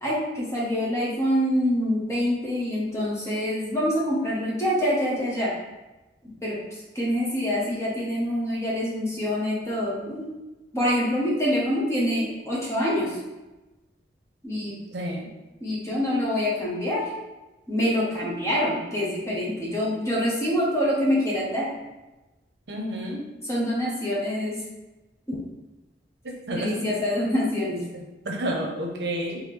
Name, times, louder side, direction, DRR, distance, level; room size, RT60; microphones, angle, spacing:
voice 1, 0.0-5.5 6.2-10.3 10.7-13.2 14.4-14.8 15.6-17.1 17.7-21.7 23.4-24.6 25.3-25.4 26.5-27.8, equal, 15° left, -6 dB, 1.0 m, -26 dB
voice 2, 14.9-15.3 22.7-23.2 26.2-26.9 28.2-29.4, right 1 dB, 65° right, -1 dB, 0.8 m, -30 dB
3.9 x 3.1 x 3.3 m, 1.1 s
head